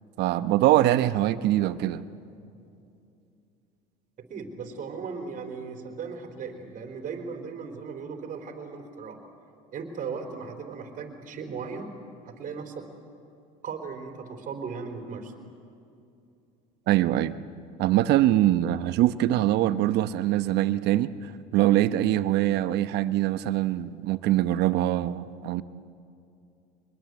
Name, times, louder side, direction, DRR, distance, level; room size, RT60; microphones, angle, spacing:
voice 1, 0.2-2.0 16.9-17.3 17.8-25.6, right 14 dB, 60° right, 13 dB, 0.9 m, -23 dB
voice 2, 4.2-9.2 9.7-11.9 12.2-12.9 13.6-15.3, right 5 dB, 45° right, 5 dB, 4.0 m, -37 dB
24.0 x 21.5 x 8.0 m, 2.6 s
supercardioid pair, 95°, 19 cm